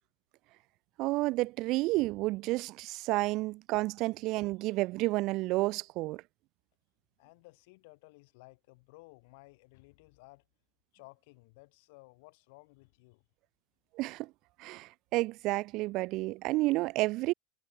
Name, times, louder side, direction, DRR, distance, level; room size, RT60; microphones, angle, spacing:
voice 1, 1.0-6.2 14.0-14.3 14.6-17.3, right 20 dB, 55° right, 0.5 m, -31 dB
voice 2, 7.2-10.5 10.9-13.2, left 26 dB, 70° left, 7.6 m, -56 dB
supercardioid pair, 120°, 0 cm